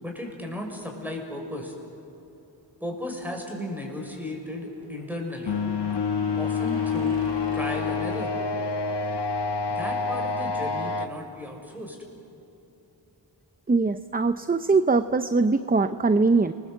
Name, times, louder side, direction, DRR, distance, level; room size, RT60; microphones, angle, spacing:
voice 1, 0.0-1.7 2.8-5.6 6.3-7.1 7.5-8.3 9.7-12.0, left 1 dB, 5° right, 1 dB, 6.1 m, -35 dB
sound 1, 3.7-10.3, right 2 dB, 75° right, 3.0 m, -47 dB
sound 2, 5.5-11.1, left 5 dB, 65° left, 1.2 m, -27 dB
voice 2, 13.7-16.5, right 3 dB, 20° right, 11 dB, 0.6 m, -22 dB
30.0 x 21.0 x 8.1 m, 2.9 s
wide cardioid pair, 80°, 45 cm